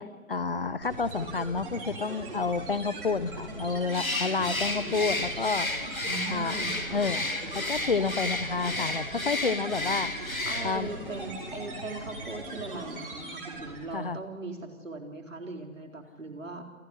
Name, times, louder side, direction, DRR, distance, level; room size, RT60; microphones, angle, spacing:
voice 1, 0.0-5.7 6.3-6.5 6.9-7.2 7.5-10.1 10.6-10.9 13.9-14.2, left 4 dB, 40° left, 16 dB, 1.0 m, -30 dB
sound 1, 0.8-14.0, right 2 dB, 40° right, 6.7 m, -40 dB
Bird, 3.9-11.0, left 2 dB, 85° left, 2.5 m, -32 dB
sound 2, 5.0-11.7, left 1 dB, 10° left, 4.7 m, -51 dB
voice 2, 6.1-7.0 10.5-16.6, right 2 dB, 65° right, 3 dB, 4.1 m, -39 dB
28.5 x 12.0 x 10.0 m, 1.4 s
figure-of-eight pair, 155°, 41 cm